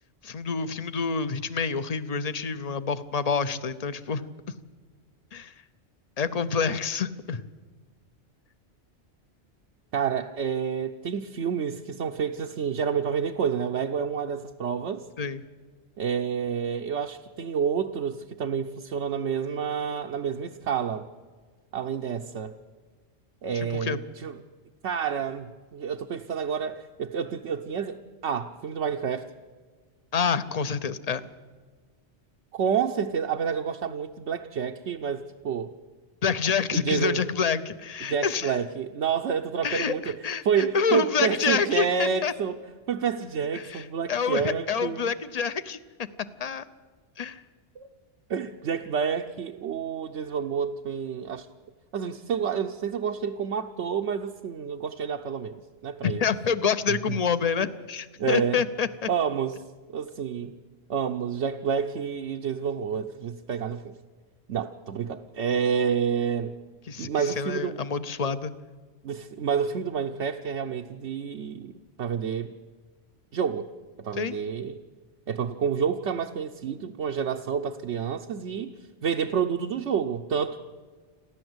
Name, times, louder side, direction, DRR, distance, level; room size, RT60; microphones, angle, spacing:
voice 1, 0.2-4.2 5.3-5.5 6.2-7.4 15.2-15.4 23.5-24.0 30.1-31.3 36.2-38.6 39.6-42.3 43.5-45.8 46.4-46.6 47.2-47.4 56.0-59.1 66.9-68.5 74.1-74.4, left 6 dB, 40° left, 14 dB, 0.8 m, -28 dB
voice 2, 9.9-15.0 16.0-21.1 21.7-22.5 23.4-24.4 24.8-29.3 32.5-35.7 36.7-37.2 38.0-40.2 40.4-42.6 42.9-45.1 47.8-47.9 48.3-51.5 51.9-56.3 56.9-57.2 58.2-58.6 59.1-59.6 59.9-60.5 60.9-63.9 64.5-66.6 67.0-67.8 68.2-68.3 69.0-72.5 73.3-73.7 74.0-74.8 75.3-80.6, right 7 dB, 80° right, 3 dB, 1.1 m, -29 dB
29.0 x 11.5 x 8.0 m, 1.5 s
omnidirectional pair, 1.2 m